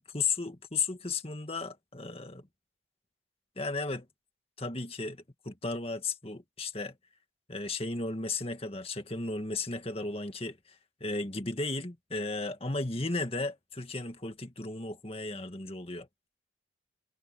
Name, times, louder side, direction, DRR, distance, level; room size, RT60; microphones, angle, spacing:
voice 1, 0.0-2.5 3.6-4.1 4.6-7.0 7.5-10.8 11.0-16.1, left 3 dB, 30° left, 1.9 m, -35 dB
head